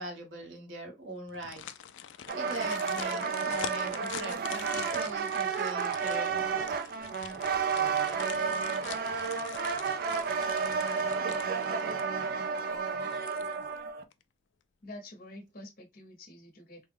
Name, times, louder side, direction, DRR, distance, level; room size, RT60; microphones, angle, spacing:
voice 1, 0.0-1.6 2.3-6.6, right 2 dB, 85° right, 1.1 m, -41 dB
sound 1, 1.3-12.2 12.6-12.7 13.1-13.8 14.1-14.2, left 10 dB, 90° left, 0.3 m, -45 dB
sound 2, 2.3-14.0, right 6 dB, 55° right, 0.4 m, -31 dB
voice 2, 14.8-16.9, left 1 dB, 50° left, 0.8 m, -47 dB
3.3 x 2.1 x 3.3 m
head